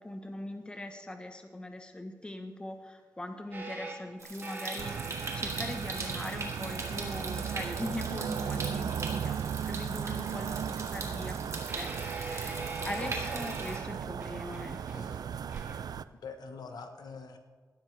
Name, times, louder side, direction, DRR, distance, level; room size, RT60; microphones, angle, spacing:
voice 1, 0.0-5.0 5.3-15.1, left 1 dB, 15° left, 6 dB, 1.0 m, -41 dB
sound 1, 3.5-9.6 10.2-10.3 11.7-15.8, right 2 dB, 30° right, 2.1 m, -44 dB
Stream, 4.2-13.8, right 3 dB, 50° right, 1.9 m, -41 dB
sound 2, 4.8-16.0, right 8 dB, 80° right, 0.3 m, -36 dB
voice 2, 12.8-13.3 14.9-15.2 16.2-17.4, left 4 dB, 90° left, 7 dB, 1.1 m, -44 dB
16.5 x 12.5 x 3.3 m, 1.5 s
wide cardioid pair, 160°, 7 cm